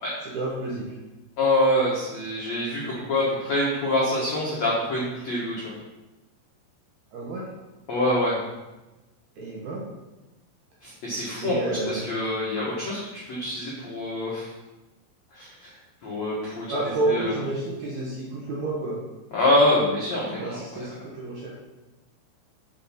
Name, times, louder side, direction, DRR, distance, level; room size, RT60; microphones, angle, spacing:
voice 1, 0.2-0.9 7.1-7.4 9.4-9.8 11.3-12.1 16.7-19.0 20.4-21.5, right 2 dB, 70° right, -4 dB, 2.5 m, -30 dB
voice 2, 1.4-5.7 7.9-8.4 10.8-11.5 11.8-13.0 13.3-14.5 15.3-15.7 16.0-16.6 17.1-17.3 19.3-20.5 20.7-20.8, left 1 dB, 70° left, -7 dB, 1.6 m, -25 dB
7.8 x 5.5 x 5.8 m, 1.1 s
omnidirectional pair, 5.9 m